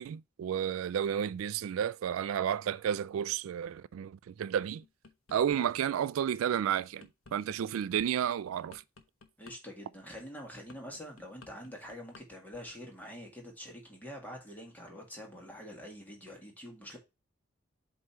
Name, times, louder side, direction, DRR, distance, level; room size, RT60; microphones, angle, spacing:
voice 1, 0.0-4.8 5.3-8.8, right 9 dB, 85° right, 0.3 m, -32 dB
sound 1, 4.8-5.6 6.0-12.2 12.5-12.8, left 3 dB, 85° left, 1.1 m, -55 dB
voice 2, 9.4-17.0, equal, 10° left, 2.0 m, -46 dB
7.8 x 3.1 x 4.5 m
head